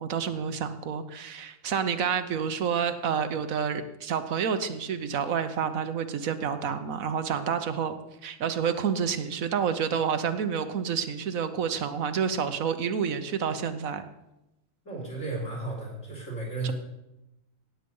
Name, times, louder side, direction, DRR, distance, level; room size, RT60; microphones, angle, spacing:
voice 1, 0.0-8.0 8.2-14.0 16.6-16.7, right 7 dB, 90° right, 9 dB, 1.4 m, -29 dB
voice 2, 14.8-16.7, right 3 dB, 65° left, -2 dB, 4.6 m, -34 dB
16.5 x 8.1 x 5.4 m, 0.92 s
omnidirectional pair, 1.4 m